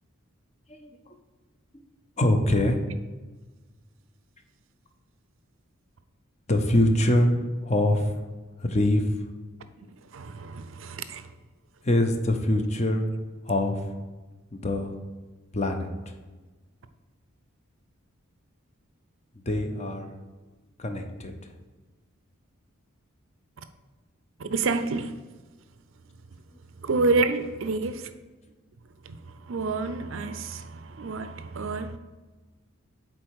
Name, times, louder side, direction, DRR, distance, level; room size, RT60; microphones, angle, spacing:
voice 1, 2.2-2.8 6.5-7.3 7.6-8.2 8.6-9.1 11.8-13.1 13.5-13.8 14.5-14.9 15.5-15.9 19.5-20.1 20.8-21.3, left 1 dB, 30° left, 5 dB, 0.7 m, -23 dB
voice 2, 9.8-11.3 24.4-25.2 26.8-28.1 29.0-32.0, right 3 dB, 65° right, 11 dB, 0.5 m, -29 dB
7.7 x 4.3 x 4.7 m, 1.3 s
head